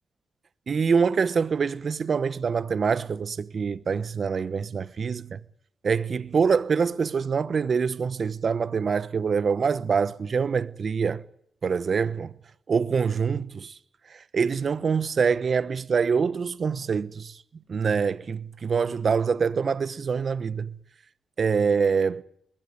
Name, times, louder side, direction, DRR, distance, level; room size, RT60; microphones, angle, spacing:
voice 1, 0.7-5.4 5.8-11.2 11.6-12.3 12.7-13.7 14.3-17.3 17.7-20.7 21.4-22.2, right 5 dB, 60° right, 1.1 m, -25 dB
21.5 x 16.5 x 9.5 m
supercardioid pair, 50°, 0 cm